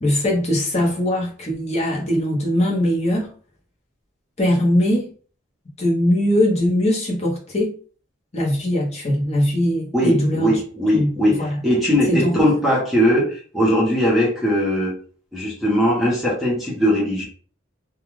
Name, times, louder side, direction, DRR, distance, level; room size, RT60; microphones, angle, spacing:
voice 1, 0.0-3.3 4.4-5.1 5.8-7.7 8.3-10.5 10.9-11.1 11.4-11.6 12.1-12.3, left 1 dB, 30° left, -3 dB, 0.9 m, -20 dB
voice 2, 9.9-14.9 15.3-17.2, equal, ahead, -6 dB, 0.8 m, -19 dB
2.3 x 2.3 x 3.1 m, 0.41 s
head